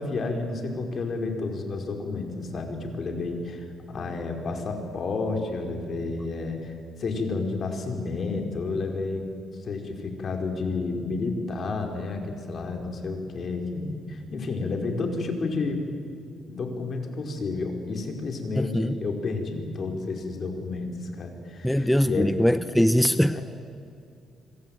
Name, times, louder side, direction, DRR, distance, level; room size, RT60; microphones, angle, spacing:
voice 1, 0.0-15.9 16.5-22.4 23.3-23.4, left 3 dB, 50° left, 4 dB, 5.2 m, -31 dB
voice 2, 18.6-18.9 21.6-23.4, equal, 5° left, 12 dB, 0.8 m, -22 dB
26.0 x 24.5 x 9.2 m, 2.5 s
cardioid pair, 90°, 0 cm